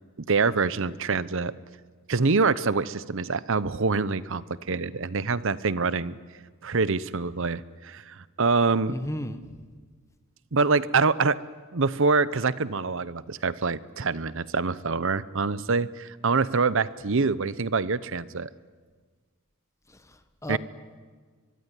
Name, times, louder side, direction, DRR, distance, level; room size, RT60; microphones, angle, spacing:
voice 1, 0.2-1.5 2.1-6.2 6.6-9.0 10.5-11.4 11.7-18.5 20.5-20.6, right 4 dB, 60° right, 17 dB, 0.8 m, -25 dB
voice 2, 8.9-9.5 19.9-20.6, left 1 dB, 15° left, 10 dB, 1.4 m, -34 dB
24.5 x 22.5 x 9.8 m, 1.5 s
head